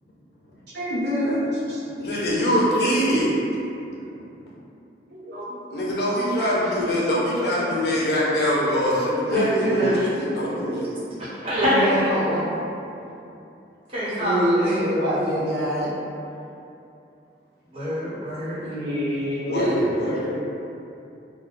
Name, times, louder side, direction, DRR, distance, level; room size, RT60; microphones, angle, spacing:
voice 1, 0.7-2.0 2.4-2.5 5.1-5.8 6.2-6.6 7.1-7.2 9.1-10.0 11.5-12.5 14.2-15.9 18.6-20.0, equal, 80° right, -9 dB, 0.8 m, -25 dB
voice 2, 2.0-3.3 4.4-4.5 5.7-10.9 19.5-20.4, equal, 65° left, -6 dB, 0.6 m, -23 dB
voice 3, 11.2-12.0 13.9-14.8 17.7-18.6, left 1 dB, 35° right, -13 dB, 1.1 m, -25 dB
2.3 x 2.1 x 3.7 m, 2.7 s
head